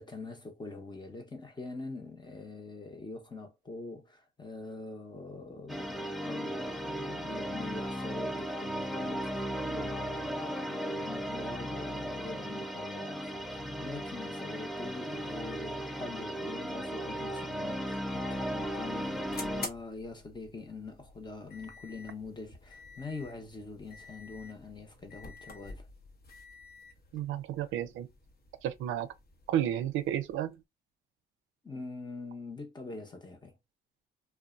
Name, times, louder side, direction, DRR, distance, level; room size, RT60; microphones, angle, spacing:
voice 1, 0.0-25.9 31.6-33.6, left 3 dB, 20° left, 0.8 m, -44 dB
sound 1, 5.7-19.7, equal, ahead, 0.5 m, -36 dB
sound 2, 18.1-30.6, left 3 dB, 50° left, 0.9 m, -50 dB
voice 2, 27.1-28.1 28.6-29.1 29.5-30.6, right 11 dB, 85° right, 0.5 m, -32 dB
2.6 x 2.2 x 2.4 m
cardioid pair, 90°, 20 cm